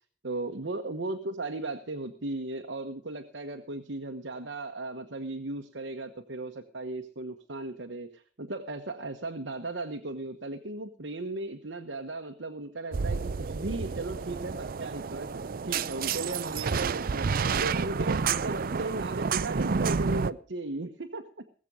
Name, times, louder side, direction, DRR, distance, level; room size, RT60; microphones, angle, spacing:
voice 1, 0.2-15.3 15.6-21.3, right 2 dB, 70° right, 4 dB, 1.2 m, -36 dB
sound 1, 12.9-20.3, right 5 dB, 50° right, 0.5 m, -30 dB
20.5 x 7.6 x 5.4 m, 0.43 s
head